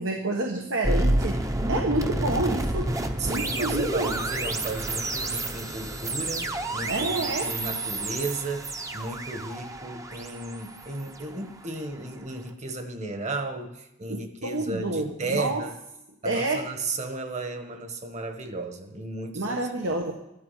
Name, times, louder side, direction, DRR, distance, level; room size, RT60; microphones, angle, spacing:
voice 1, 0.0-2.9 3.2-4.2 6.9-7.5 14.1-15.6 16.2-16.7 19.3-20.1, right 2 dB, 80° right, 2 dB, 1.5 m, -28 dB
sound 1, 0.8-11.9, right 1 dB, 15° right, 0.8 m, -30 dB
voice 2, 3.2-15.7 16.2-19.7, right 2 dB, 35° right, 7 dB, 1.4 m, -34 dB
13.5 x 12.0 x 5.7 m, 0.86 s
head